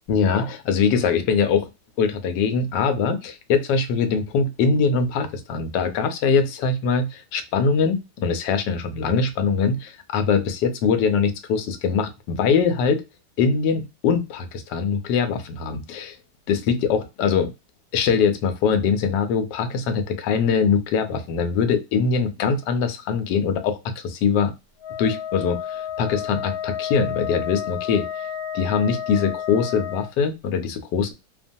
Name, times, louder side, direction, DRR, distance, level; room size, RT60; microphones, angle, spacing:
voice 1, 0.1-1.7 2.0-13.0 13.4-16.2 16.5-17.5 17.9-24.5 25.0-28.1 28.5-31.1, left 5 dB, 85° left, 1.2 m, -22 dB
Wind instrument woodwind instrument, 24.8-30.1, left 9 dB, 65° left, 1.2 m, -31 dB
2.8 x 2.2 x 2.6 m
omnidirectional pair, 1.8 m